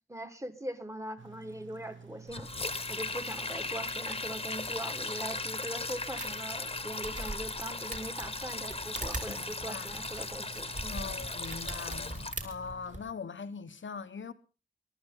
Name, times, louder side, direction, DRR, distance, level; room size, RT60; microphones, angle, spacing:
voice 1, 0.1-2.5 2.9-11.3, right 1 dB, 15° right, 1.6 m, -41 dB
sound 1, 1.2-13.1, right 6 dB, 90° right, 1.4 m, -52 dB
Sink (filling or washing), 2.3-12.3, left 3 dB, 30° left, 1.1 m, -37 dB
sound 2, 6.2-6.3 6.7-6.8 7.0-7.6 7.9-13.0, right 2 dB, 40° right, 3.2 m, -40 dB
voice 2, 9.2-10.1 10.9-14.3, left 5 dB, 90° left, 1.1 m, -41 dB
23.0 x 12.0 x 3.8 m
wide cardioid pair, 95°, 19 cm